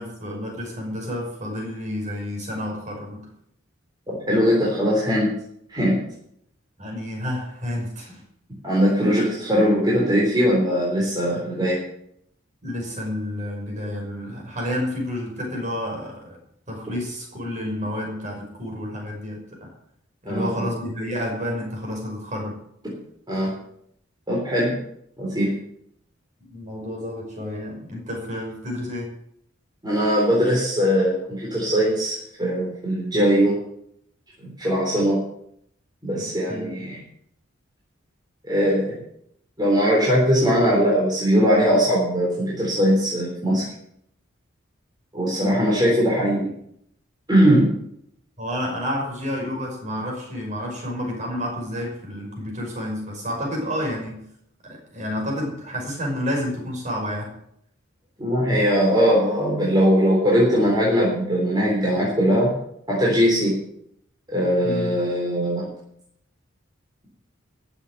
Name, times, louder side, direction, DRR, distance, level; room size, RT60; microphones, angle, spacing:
voice 1, 0.0-3.3 6.8-8.2 12.6-16.4 16.7-19.7 20.2-22.6 26.5-29.1 36.2-36.9 45.5-45.8 48.4-54.3 54.6-57.4 64.6-65.0, equal, 35° right, 0 dB, 6.0 m, -30 dB
voice 2, 4.1-5.3 5.7-6.0 8.6-11.8 20.3-20.7 22.8-22.9 23.3-23.6 24.3-24.8 25.2-25.5 29.8-33.6 34.4-35.2 36.0-36.9 38.4-39.0 39.6-43.7 45.1-46.5 47.3-47.7 58.2-62.5 62.9-63.6 64.3-65.7, equal, 20° right, -5 dB, 3.9 m, -20 dB
14.5 x 7.2 x 9.4 m, 0.73 s
head